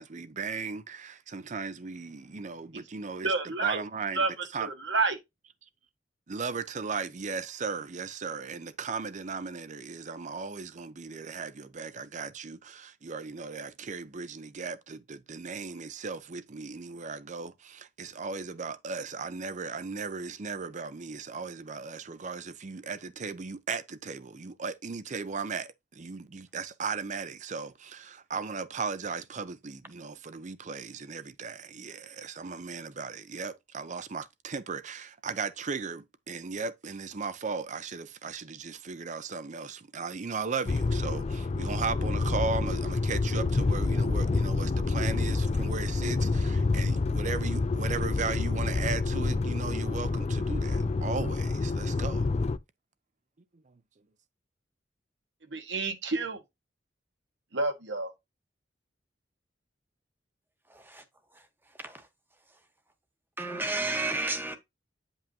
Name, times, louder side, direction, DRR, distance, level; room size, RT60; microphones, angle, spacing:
voice 1, 0.0-4.2 4.5-4.7 6.3-52.3 53.7-53.8, right 4 dB, 40° right, 0.6 m, -37 dB
voice 2, 3.2-3.8 4.1-4.3 4.6-5.2 55.5-56.4 57.5-58.1, right 3 dB, 75° right, 1.4 m, -29 dB
sound 1, 40.7-52.6, left 3 dB, 35° left, 0.4 m, -28 dB
voice 3, 60.7-61.0 61.3-61.5 61.8-62.1 63.4-64.6, right 2 dB, 10° right, 1.0 m, -32 dB
9.0 x 5.4 x 2.7 m
head